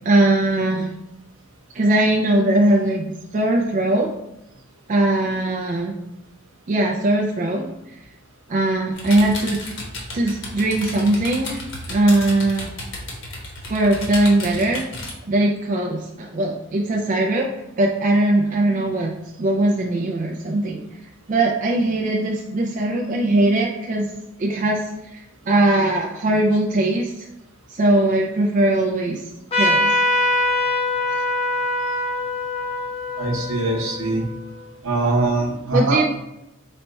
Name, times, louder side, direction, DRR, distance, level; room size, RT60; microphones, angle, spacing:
voice 1, 0.0-0.9 1.7-4.1 4.9-6.0 6.7-7.7 8.5-9.6 10.1-11.6 11.9-12.7 13.7-14.8 15.3-17.5 17.8-19.1 19.4-20.8 21.3-24.1 24.4-24.8 25.1-27.1 27.7-29.2 29.5-29.9 31.1-31.2 35.7-36.0, right 2 dB, 40° right, -1 dB, 0.3 m, -20 dB
sound 1, 8.9-15.1, left 2 dB, 60° left, 0.9 m, -33 dB
Trumpet, 29.5-34.6, left 1 dB, 30° left, 0.5 m, -23 dB
voice 2, 33.2-34.2 34.8-36.0, right 2 dB, 75° right, 0 dB, 0.9 m, -22 dB
4.2 x 2.2 x 3.9 m, 0.89 s
head